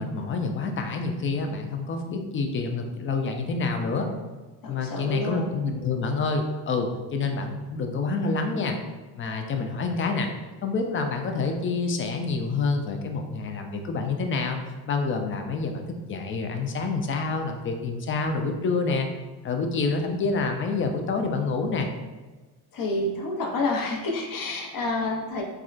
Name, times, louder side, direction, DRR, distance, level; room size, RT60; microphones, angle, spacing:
voice 1, 0.0-4.1 4.6-8.8 9.2-10.3 10.6-14.6 14.9-19.1 19.4-21.9, left 4 dB, 30° left, 4 dB, 0.4 m, -27 dB
voice 2, 4.6-5.6 22.7-25.4, left 2 dB, 45° left, 0 dB, 0.7 m, -29 dB
3.5 x 2.2 x 2.4 m, 1.2 s
supercardioid pair, 80°, 48 cm